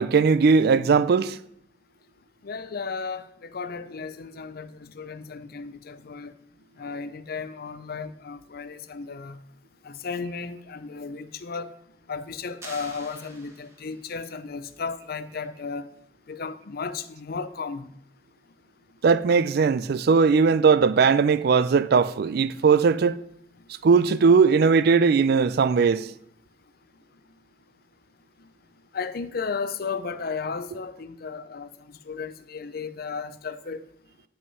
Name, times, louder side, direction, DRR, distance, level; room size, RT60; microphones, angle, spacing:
voice 1, 0.0-1.4 19.0-23.2 23.8-26.1, right 5 dB, 60° right, 0.4 m, -19 dB
voice 2, 2.4-6.3 6.8-9.4 9.8-11.7 12.1-15.9 16.3-17.9 28.4-28.5 28.9-33.8, left 5 dB, 60° left, 0.6 m, -34 dB
sound 1, 12.6-14.1, right 2 dB, 15° right, 1.6 m, -45 dB
9.3 x 5.6 x 5.5 m
head